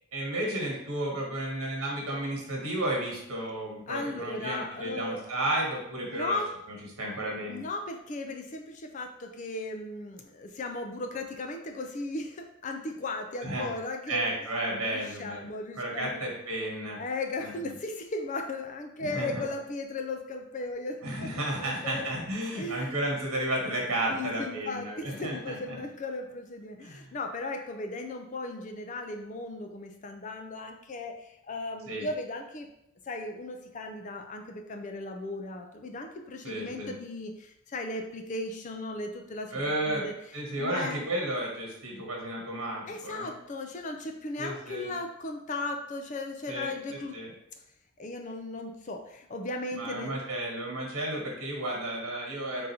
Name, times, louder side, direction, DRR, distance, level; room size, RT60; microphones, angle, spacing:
voice 1, 0.1-6.4 7.0-7.6 13.4-13.7 14.1-15.4 15.8-17.0 17.4-17.7 19.0-19.4 21.0-25.8 26.8-27.0 31.9-32.1 36.4-36.9 39.5-40.0 40.3-43.3 44.4-44.9 46.5-46.7 47.1-47.3 49.7-52.7, right 1 dB, 75° right, -1 dB, 1.4 m, -32 dB
voice 2, 3.9-5.2 6.0-6.5 7.4-14.3 14.9-16.2 17.0-21.3 21.6-22.2 22.6-23.0 24.1-32.7 33.1-39.6 39.9-40.1 40.6-41.0 42.9-47.2 48.0-50.1, left 2 dB, 35° left, 3 dB, 0.4 m, -36 dB
3.8 x 2.7 x 4.2 m, 0.80 s
head